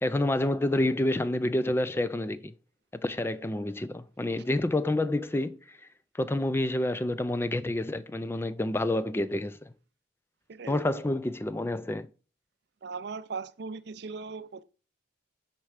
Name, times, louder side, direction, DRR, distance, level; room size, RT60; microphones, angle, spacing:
voice 1, 0.0-2.5 2.9-5.8 6.1-9.7 10.7-12.1, left 1 dB, 10° left, 0.3 m, -28 dB
voice 2, 10.5-11.0 12.8-14.6, right 4 dB, 60° right, 0.5 m, -39 dB
9.9 x 4.4 x 4.8 m
head